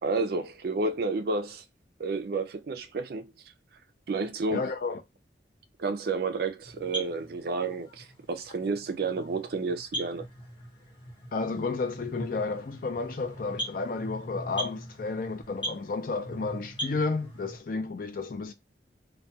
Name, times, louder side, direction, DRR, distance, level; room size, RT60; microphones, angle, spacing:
voice 1, 0.0-1.6 2.0-3.3 4.1-4.6 5.8-10.3, right 3 dB, 55° right, 0.4 m, -30 dB
voice 2, 4.5-5.0 11.3-18.5, left 4 dB, 50° left, 0.4 m, -32 dB
sound 1, 6.6-17.6, right 1 dB, 25° left, 0.8 m, -40 dB
2.3 x 2.2 x 2.6 m
head